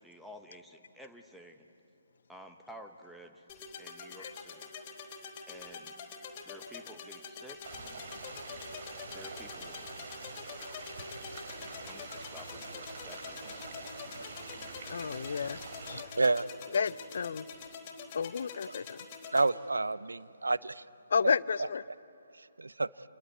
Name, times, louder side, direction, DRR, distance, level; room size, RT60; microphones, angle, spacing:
voice 1, 0.0-1.6 2.3-3.4 3.8-4.7 5.5-5.9 6.4-7.6 9.1-9.9 11.9-13.6, equal, ahead, 3 dB, 1.4 m, -52 dB
sound 1, 3.5-19.5, left 5 dB, 30° left, 3.8 m, -46 dB
sound 2, 7.6-16.0, right 3 dB, 50° right, 4.1 m, -45 dB
voice 2, 14.9-16.1 16.7-17.5 18.1-19.1 21.1-21.8, left 6 dB, 55° left, 19 dB, 0.5 m, -32 dB
voice 3, 19.3-20.8 21.2-21.3 22.3-22.9, right 3 dB, 75° right, 17 dB, 0.6 m, -29 dB
28.0 x 21.5 x 8.6 m, 2.8 s
figure-of-eight pair, 135°, 0 cm